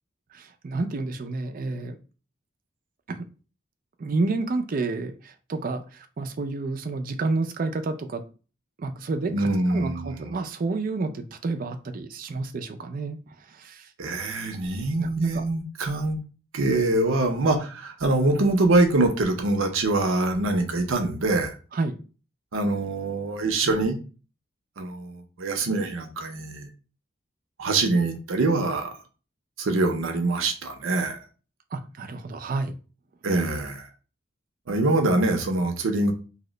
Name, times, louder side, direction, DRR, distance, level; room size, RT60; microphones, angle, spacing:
voice 1, 0.3-2.0 3.1-3.2 4.0-8.2 8.8-13.2 13.5-13.9 15.0-15.4 21.7-22.0 31.7-32.8, right 3 dB, 45° right, 0.4 m, -30 dB
voice 2, 9.3-10.2 14.0-16.2 16.5-21.6 22.5-24.0 24.8-26.7 27.6-29.0 29.6-31.2 33.2-33.9 34.7-36.1, right 2 dB, 85° right, 0.6 m, -24 dB
2.7 x 2.1 x 3.8 m
head